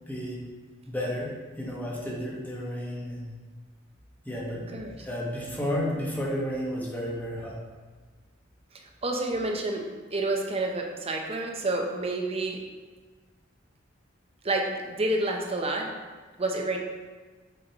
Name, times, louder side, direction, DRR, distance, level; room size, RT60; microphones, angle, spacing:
voice 1, 0.1-0.4 0.8-1.3 1.6-3.3 4.2-4.7 5.0-7.6, equal, 10° left, -4 dB, 1.2 m, -32 dB
voice 2, 9.0-9.8 10.1-12.6 14.4-15.9 16.4-16.8, right 2 dB, 30° right, 2 dB, 0.7 m, -29 dB
6.7 x 5.0 x 2.9 m, 1.4 s
head